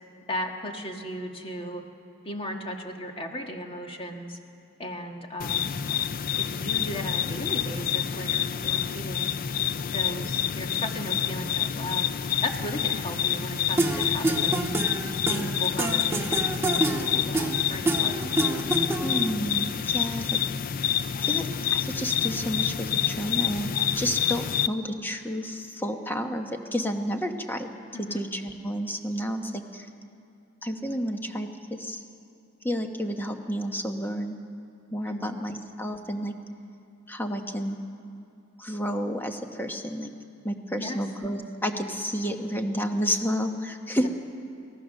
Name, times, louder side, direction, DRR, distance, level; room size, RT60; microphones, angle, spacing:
voice 1, 0.3-1.8 2.2-4.4 4.8-5.8 6.4-9.3 9.9-12.1 12.4-14.7 15.2-16.8 17.1-18.2 27.9-28.2 35.1-35.4 40.8-41.0 44.0-44.1, equal, 25° left, 3 dB, 1.6 m, -36 dB
sound 1, 5.4-24.7, left 9 dB, 45° left, 0.4 m, -28 dB
sound 2, 13.8-19.3, right 2 dB, 10° right, 1.5 m, -27 dB
voice 2, 19.0-20.4 21.2-21.5 21.7-27.7 28.0-29.9 30.6-32.0 32.6-34.4 34.9-36.3 37.1-37.8 38.6-40.1 40.4-44.1, equal, 10° left, 5 dB, 1.1 m, -30 dB
23.5 x 17.0 x 6.5 m, 2.6 s
head